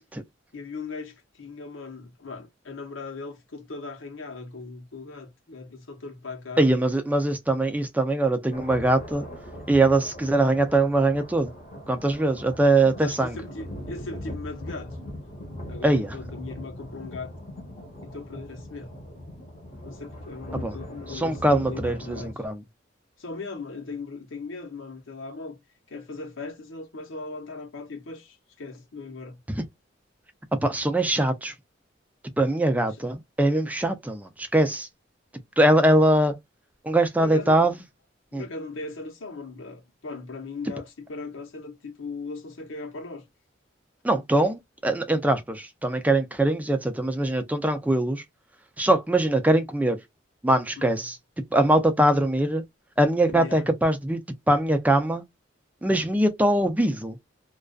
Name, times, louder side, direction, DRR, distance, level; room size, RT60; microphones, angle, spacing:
voice 1, 0.5-6.8 13.0-15.0 15.7-17.3 18.0-18.9 19.8-22.4 23.2-25.6 25.9-29.4 37.2-37.7 38.3-43.2 50.8-51.0 53.3-53.7, left 3 dB, 85° left, 0.9 m, -38 dB
voice 2, 6.6-9.3 9.7-11.5 11.9-13.4 15.8-16.2 20.6-20.8 21.1-22.6 29.5-29.6 30.5-31.5 32.4-34.9 35.6-36.4 36.8-37.8 38.3-38.4 44.0-48.2 48.8-50.0 50.4-51.2 51.5-52.6 53.0-54.2 54.5-55.2 55.8-57.2, right 1 dB, 10° right, 0.3 m, -22 dB
sound 1, 8.5-22.3, left 1 dB, 35° left, 0.9 m, -40 dB
2.4 x 2.3 x 2.3 m
head